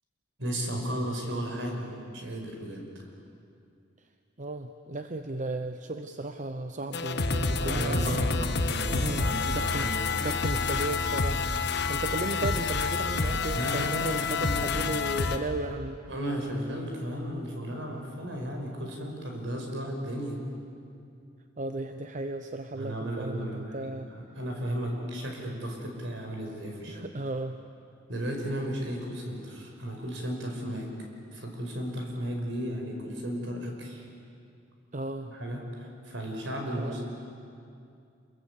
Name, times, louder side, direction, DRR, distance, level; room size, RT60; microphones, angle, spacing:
voice 1, 0.4-2.8 7.6-10.0 13.5-14.8 16.1-20.4 22.8-27.0 28.1-30.9 31.3-34.0 35.2-37.1, equal, 70° right, 1 dB, 5.4 m, -34 dB
voice 2, 4.4-8.3 8.9-9.9 10.2-16.0 21.6-24.1 26.9-27.6 34.9-35.3 36.8-37.0, right 2 dB, 40° right, 7 dB, 0.8 m, -35 dB
sound 1, 6.9-15.4, left 4 dB, 60° left, 1.4 m, -28 dB
28.0 x 22.0 x 8.5 m, 2.5 s
head